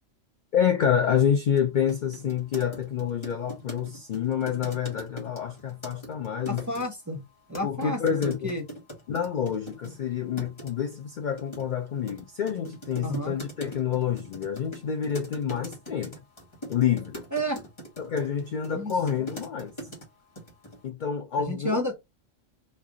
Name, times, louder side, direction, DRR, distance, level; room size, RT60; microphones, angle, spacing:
voice 1, 0.5-6.7 7.6-8.5 9.1-16.1 16.7-17.2 18.0-19.7 20.8-21.8, left 8 dB, 70° left, 0.4 m, -28 dB
sound 1, 1.6-1.7 1.9-6.8 7.5-10.0 10.4-10.7 11.4-20.1 20.4-20.8, right 1 dB, 25° left, 1.2 m, -41 dB
voice 2, 6.5-7.2 7.5-8.6 13.0-13.3 17.3-17.6 18.7-18.9 21.4-21.9, equal, 20° right, 0.7 m, -31 dB
3.2 x 2.4 x 3.7 m
omnidirectional pair, 1.4 m